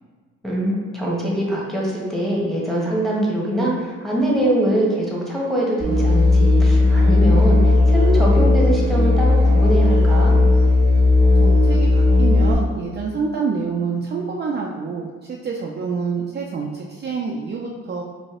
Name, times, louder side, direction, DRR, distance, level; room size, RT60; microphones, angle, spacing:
voice 1, 0.4-10.3, right 1 dB, ahead, -4 dB, 1.1 m, -23 dB
Musical instrument, 5.8-12.5, left 2 dB, 45° left, 1.3 m, -15 dB
voice 2, 11.4-18.0, right 5 dB, 35° right, -2 dB, 0.4 m, -27 dB
4.1 x 2.6 x 3.7 m, 1.5 s
cardioid pair, 90°, 30 cm